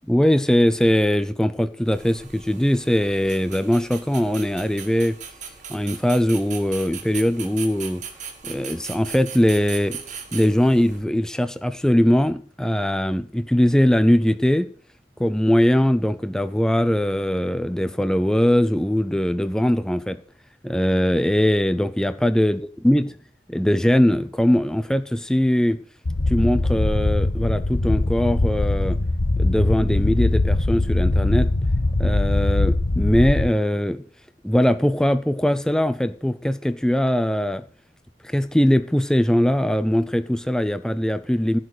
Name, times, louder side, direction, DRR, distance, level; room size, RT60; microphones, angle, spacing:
voice 1, 0.1-5.2 5.7-8.0 8.4-14.7 15.2-20.2 20.6-23.2 23.5-25.8 26.3-29.0 29.4-31.5 32.0-34.0 34.4-37.6 38.2-41.6, equal, 5° left, 12 dB, 0.5 m, -21 dB
sound 1, 1.9-11.0, right 7 dB, 45° right, 2.3 m, -39 dB
sound 2, 26.1-33.5, left 2 dB, 60° left, 1.0 m, -21 dB
15.0 x 6.5 x 6.5 m, 0.43 s
head